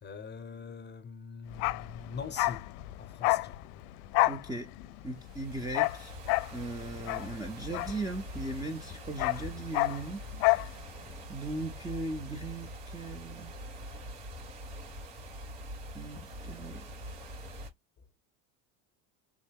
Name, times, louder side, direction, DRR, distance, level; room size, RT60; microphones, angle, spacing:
voice 1, 0.0-2.7 3.0-3.6, left 6 dB, 25° left, 0.8 m, -43 dB
Bark, 1.5-8.5 8.8-10.7 11.0-11.1, left 21 dB, 75° left, 0.5 m, -30 dB
voice 2, 4.3-4.7 5.0-6.1 6.5-10.2 10.5-10.6 11.3-13.5 15.9-16.8, right 2 dB, 10° right, 0.5 m, -38 dB
sound 1, 5.0-17.7, equal, 85° right, 2.3 m, -44 dB
3.6 x 2.1 x 3.4 m
supercardioid pair, 95°, 43 cm